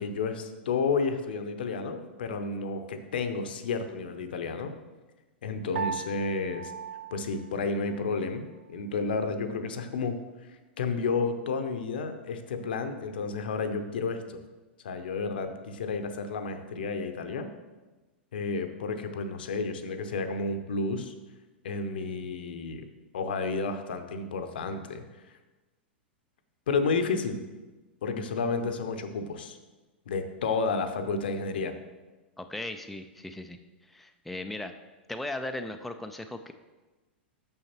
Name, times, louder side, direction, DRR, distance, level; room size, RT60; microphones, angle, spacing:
voice 1, 0.0-4.7 5.4-6.7 7.1-10.2 10.8-14.4 14.8-17.5 18.3-21.1 21.6-22.9 23.1-25.0 26.7-27.4 28.0-29.6 30.1-31.7, left 4 dB, 60° left, 8 dB, 0.7 m, -31 dB
Piano, 5.8-8.3, right 6 dB, 65° right, 0.4 m, -38 dB
voice 2, 32.4-34.7 35.1-36.5, left 1 dB, ahead, 6 dB, 0.3 m, -37 dB
8.8 x 6.4 x 3.0 m, 1.2 s
figure-of-eight pair, 95°, 6 cm